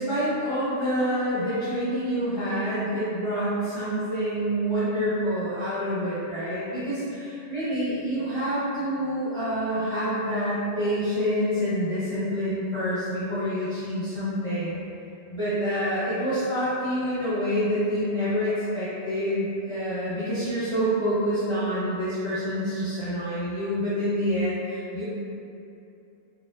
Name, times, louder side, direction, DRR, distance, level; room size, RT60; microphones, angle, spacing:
voice 1, 0.0-14.8 15.3-25.0, equal, 30° left, -14 dB, 0.8 m, -27 dB
4.2 x 2.3 x 2.5 m, 2.7 s
omnidirectional pair, 1.2 m